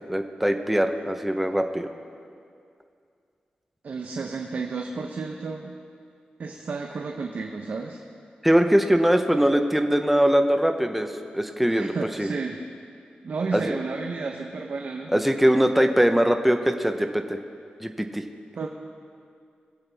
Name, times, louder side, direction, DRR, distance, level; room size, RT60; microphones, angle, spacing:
voice 1, 0.1-1.9 8.4-12.3 13.5-13.8 15.1-17.4 17.8-18.2, equal, 5° right, 5 dB, 0.8 m, -22 dB
voice 2, 3.8-5.7 6.4-8.0 11.7-12.6 13.2-15.1 18.6-18.7, right 4 dB, 60° right, 2 dB, 0.8 m, -32 dB
22.0 x 7.9 x 3.4 m, 2.3 s
wide cardioid pair, 95°, 3 cm